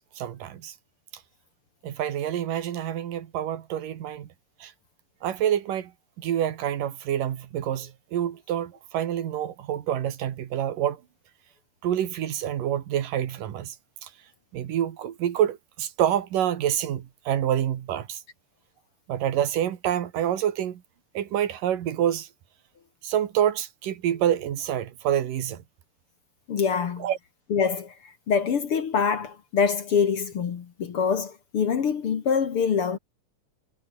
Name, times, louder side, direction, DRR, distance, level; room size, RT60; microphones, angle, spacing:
voice 1, 0.2-0.7 1.8-4.3 4.6-4.7 5.2-5.9 6.2-11.0 11.8-13.7 14.0-14.1 14.5-18.2 19.1-20.8 21.1-22.3 23.0-25.6 27.0-27.2, right 10 dB, 75° right, 3.4 m, -27 dB
voice 2, 26.5-27.1 27.5-27.9 28.3-33.0, left 6 dB, 50° left, 2.1 m, -25 dB
omnidirectional pair, 3.8 m